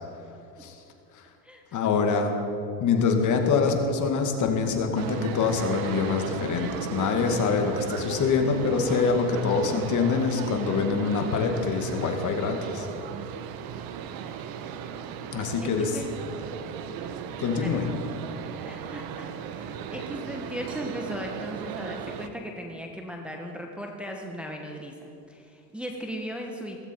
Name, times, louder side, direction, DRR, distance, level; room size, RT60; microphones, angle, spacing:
voice 1, 1.7-2.3 2.8-12.9 15.3-16.0 17.4-17.9, left 5 dB, 40° left, 4 dB, 2.2 m, -25 dB
sound 1, 4.9-22.3, right 8 dB, 45° right, 1.2 m, -36 dB
voice 2, 15.6-16.1 17.6-17.8 18.6-26.8, equal, ahead, 1 dB, 1.3 m, -37 dB
17.0 x 15.5 x 4.6 m, 2.7 s
supercardioid pair, 105°, 47 cm